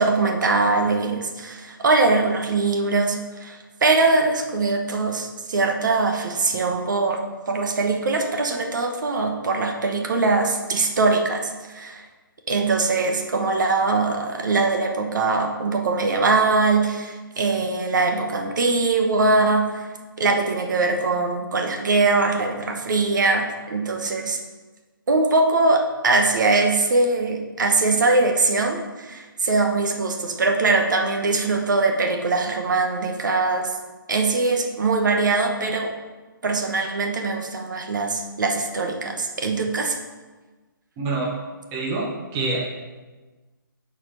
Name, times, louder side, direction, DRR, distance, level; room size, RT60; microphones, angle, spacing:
voice 1, 0.0-12.0 12.5-19.9 20.2-24.4 25.1-33.8 34.1-35.9 36.4-40.0, right 3 dB, 60° right, 3 dB, 1.1 m, -22 dB
voice 2, 41.0-41.4 41.7-42.7, right 3 dB, 15° right, -3 dB, 0.9 m, -26 dB
7.8 x 4.4 x 5.6 m, 1.3 s
hypercardioid pair, 160°, 12 cm